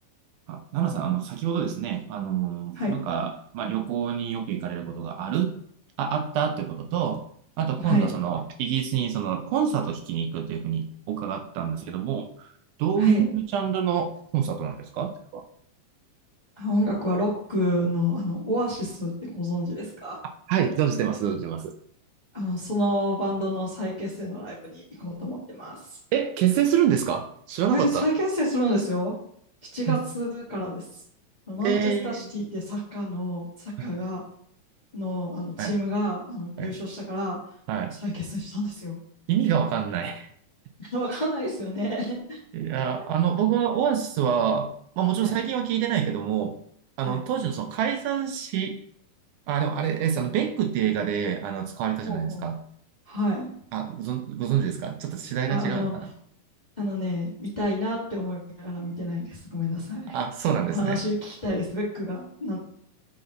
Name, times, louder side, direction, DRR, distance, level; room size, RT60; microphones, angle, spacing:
voice 1, 0.5-5.6 6.0-7.2 7.6-12.5 12.8-15.4 20.5-21.7 26.1-28.1 29.9-30.0 31.6-32.3 33.8-33.9 35.6-35.8 36.6-36.8 37.7-38.0 39.3-40.3 42.5-46.6 47.0-48.8 49.5-52.6 53.7-56.1 60.1-61.0, right 9 dB, 80° right, 5 dB, 1.9 m, -26 dB
voice 2, 7.8-8.1 13.0-13.3 16.6-20.2 22.3-26.0 27.7-29.1 29.7-31.0 31.5-34.2 34.9-37.4 38.0-39.0 40.8-42.4 45.2-45.3 47.0-47.2 52.0-52.4 53.1-53.5 55.4-56.1 56.8-60.2 60.5-62.6, equal, 20° left, -5 dB, 1.1 m, -29 dB
7.8 x 5.6 x 3.8 m, 0.67 s
omnidirectional pair, 3.9 m